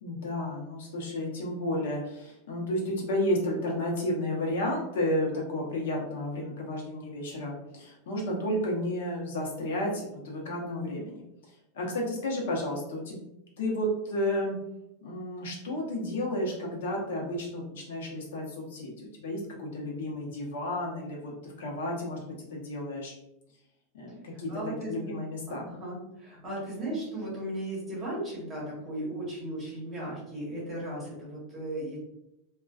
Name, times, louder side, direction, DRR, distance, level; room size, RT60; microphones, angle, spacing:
voice 1, 0.0-13.2 13.6-14.5 15.0-23.1 23.9-25.7, left 1 dB, 80° left, -2 dB, 0.8 m, -32 dB
voice 2, 24.3-25.1 25.5-32.0, right 1 dB, 10° right, -7 dB, 1.0 m, -36 dB
2.4 x 2.3 x 2.3 m, 0.85 s
supercardioid pair, 165°, 0 cm